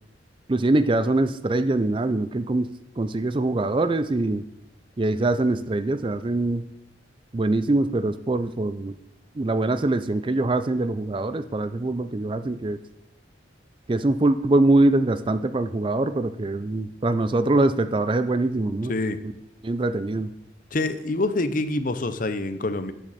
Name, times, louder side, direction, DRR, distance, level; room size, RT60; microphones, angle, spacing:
voice 1, 0.5-4.5 5.0-6.7 7.3-8.9 9.4-12.8 13.9-18.9 19.2-19.3 19.6-20.3, right 2 dB, 25° right, 12 dB, 0.4 m, -23 dB
voice 2, 18.9-19.2 20.7-22.9, left 2 dB, 45° left, 11 dB, 0.8 m, -26 dB
13.0 x 9.1 x 4.2 m, 0.86 s
head